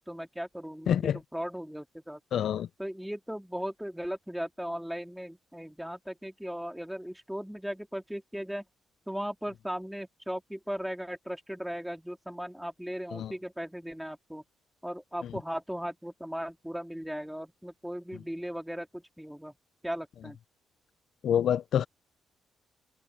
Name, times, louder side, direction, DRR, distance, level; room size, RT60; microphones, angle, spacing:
voice 1, 0.0-2.2 2.8-8.6 9.1-14.4 14.8-19.5 19.8-20.4, equal, ahead, 3.2 m, -37 dB
voice 2, 0.9-1.2 2.3-2.7 13.1-13.3 21.2-21.8, left 9 dB, 65° left, 0.6 m, -26 dB
open air
cardioid pair, 90°, 0 cm